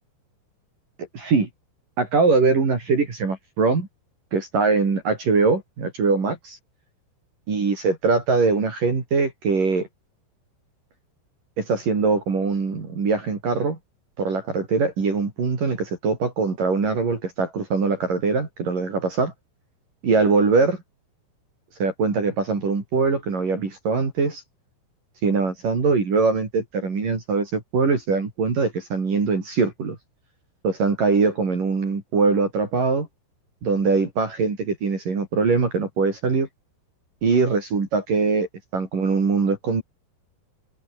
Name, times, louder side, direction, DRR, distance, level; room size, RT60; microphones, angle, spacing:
voice 1, 1.1-1.5 2.0-3.9 4.3-6.6 7.5-9.9 11.6-13.8 14.2-19.3 20.0-20.8 21.8-24.4 25.2-30.0 30.6-33.1 33.6-36.5 37.2-39.8, right 4 dB, 45° right, 6.1 m, -22 dB
omnidirectional pair, 5.8 m